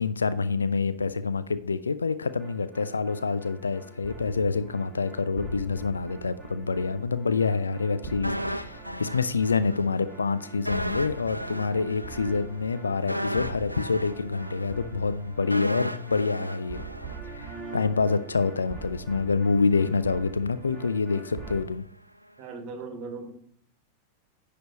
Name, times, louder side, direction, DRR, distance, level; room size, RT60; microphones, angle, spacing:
voice 1, 0.0-16.8 17.2-21.8, left 4 dB, 75° left, 14 dB, 0.3 m, -27 dB
sound 1, 2.2-21.6, right 5 dB, 15° right, 1.7 m, -43 dB
sound 2, 8.2-9.9 10.1-10.3 10.7-17.7 18.0-18.2, equal, 90° right, 0.3 m, -34 dB
voice 2, 22.4-23.3, right 4 dB, 40° right, 5 dB, 1.4 m, -38 dB
10.0 x 3.4 x 5.1 m, 0.64 s
figure-of-eight pair, 90°, 0 cm